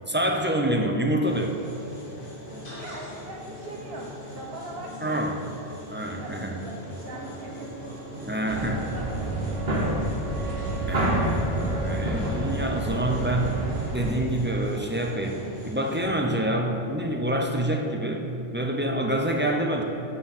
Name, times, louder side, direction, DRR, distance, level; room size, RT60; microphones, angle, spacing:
voice 1, 0.1-1.6 5.0-5.4 5.9-6.6 8.3-8.8 10.9-13.5 13.9-19.8, right 1 dB, 15° right, 1 dB, 0.4 m, -27 dB
sound 1, 1.2-16.0, left 1 dB, 60° left, 1.7 m, -41 dB
voice 2, 2.6-5.3 6.2-8.0 8.5-9.7, right 2 dB, 70° right, -3 dB, 0.9 m, -41 dB
Wind instrument woodwind instrument, 7.1-15.1, right 2 dB, 90° right, 1.1 m, -41 dB
sound 2, 8.5-14.1, right 1 dB, 50° right, 1.3 m, -28 dB
6.2 x 5.4 x 6.6 m, 2.9 s
omnidirectional pair, 1.1 m